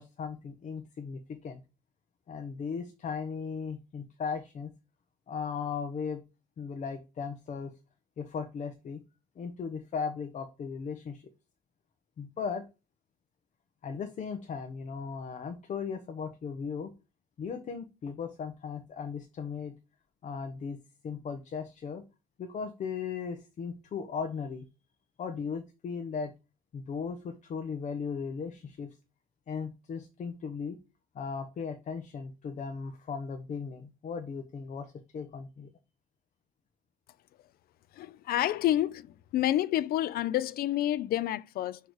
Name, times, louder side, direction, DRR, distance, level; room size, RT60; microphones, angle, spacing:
voice 1, 0.0-1.6 2.3-4.7 5.3-6.2 6.6-7.7 8.2-9.0 9.4-11.2 12.2-12.6 13.8-16.9 17.4-19.7 20.2-20.8 21.0-22.0 22.4-24.7 25.2-26.3 26.7-28.9 29.5-30.8 31.1-34.9 35.1-35.7, left 6 dB, 45° left, 1.0 m, -37 dB
voice 2, 37.9-41.8, left 13 dB, 65° left, 0.5 m, -29 dB
6.5 x 3.2 x 4.6 m
cardioid pair, 110°, 17 cm